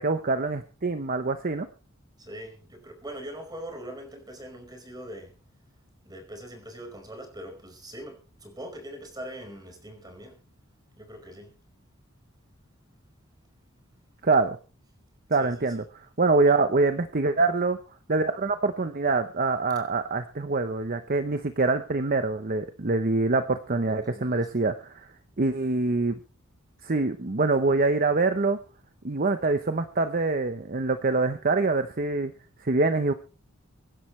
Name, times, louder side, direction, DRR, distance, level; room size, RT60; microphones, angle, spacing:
voice 1, 0.0-1.7 14.2-14.6 15.3-15.8 16.2-17.8 18.1-25.1 25.4-26.2 26.8-28.6 29.0-32.3 32.6-33.1, right 3 dB, 40° right, 0.9 m, -25 dB
voice 2, 2.2-5.4 6.0-10.4 11.0-11.5 15.4-15.8 23.8-24.5, right 1 dB, 20° right, 4.9 m, -42 dB
24.5 x 11.0 x 3.2 m
head